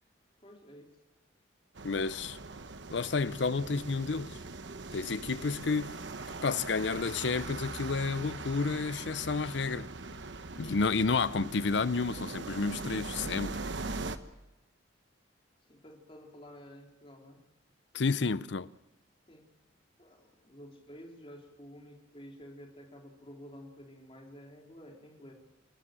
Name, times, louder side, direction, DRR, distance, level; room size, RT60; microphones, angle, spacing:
voice 1, 0.4-0.9 15.7-17.4 19.3-19.5 20.0-25.3, equal, 30° left, 3.4 m, -51 dB
sound 1, 1.7-14.2, right 3 dB, 70° right, 1.1 m, -41 dB
voice 2, 1.8-2.4 2.9-4.4 4.9-6.0 6.4-9.9 10.6-13.6 17.9-18.7, left 4 dB, 65° left, 0.6 m, -30 dB
29.5 x 13.0 x 7.5 m
head